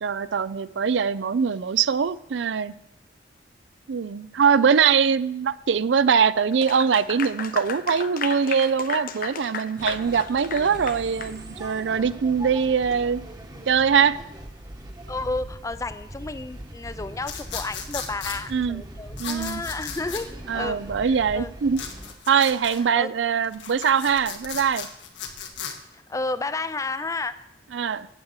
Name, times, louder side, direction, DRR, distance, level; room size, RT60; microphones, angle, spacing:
voice 1, 0.0-2.7 3.9-13.2 13.7-14.2 18.5-18.8 19.2-19.6 20.5-21.8 22.3-24.9 27.7-28.1, right 6 dB, 80° right, 16 dB, 0.4 m, -22 dB
Clapping / Applause, 6.5-11.4, left 6 dB, 50° left, 0.7 m, -34 dB
sound 1, 9.8-22.1, right 1 dB, 20° right, 1.1 m, -40 dB
voice 2, 15.1-21.5 22.3-22.5 23.0-23.1 25.9-27.4, left 3 dB, 20° left, 13 dB, 0.5 m, -32 dB
sound 2, 17.2-18.4 19.2-20.2 21.7-22.8 23.4-25.7, left 7 dB, 85° left, 1.6 m, -36 dB
9.6 x 8.0 x 7.1 m, 0.85 s
head